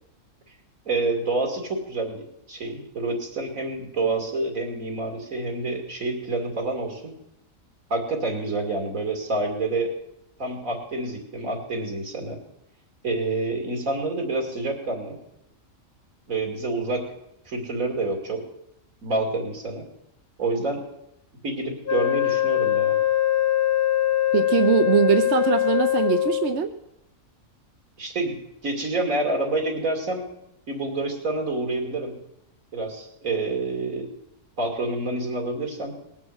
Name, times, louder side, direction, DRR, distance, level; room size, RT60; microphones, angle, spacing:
voice 1, 0.8-7.2 7.9-9.9 10.4-12.4 13.0-15.2 16.3-17.1 17.5-18.4 19.0-19.9 20.4-20.8 21.4-23.0 28.0-28.4 28.6-30.3 30.7-32.2 32.7-34.1 34.6-36.0, right 2 dB, 75° right, 3 dB, 3.1 m, -28 dB
Wind instrument woodwind instrument, 21.9-26.6, left 13 dB, 45° left, 1.1 m, -22 dB
voice 2, 24.3-26.7, right 8 dB, 60° right, 7 dB, 1.0 m, -21 dB
19.5 x 7.3 x 7.9 m, 0.83 s
omnidirectional pair, 1.4 m